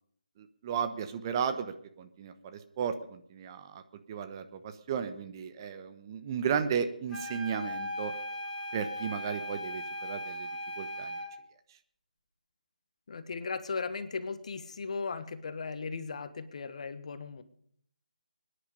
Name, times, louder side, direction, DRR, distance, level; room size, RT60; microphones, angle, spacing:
voice 1, 0.4-3.8 4.1-8.1 8.7-10.5 10.8-11.2, right 7 dB, 30° right, 9 dB, 1.0 m, -34 dB
sound 1, 7.1-11.4, equal, 5° left, 3.4 m, -38 dB
voice 2, 13.1-17.4, left 4 dB, 50° left, 11 dB, 1.4 m, -37 dB
23.0 x 10.5 x 5.3 m, 0.65 s
figure-of-eight pair, 150°, 5 cm